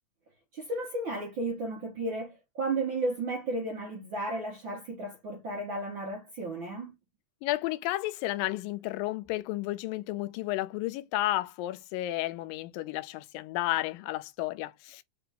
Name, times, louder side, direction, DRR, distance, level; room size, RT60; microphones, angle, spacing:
voice 1, 0.5-6.9, right 2 dB, 70° right, 1.1 m, -33 dB
voice 2, 7.4-15.0, left 16 dB, 80° left, 2.2 m, -32 dB
5.8 x 2.5 x 3.5 m
omnidirectional pair, 4.3 m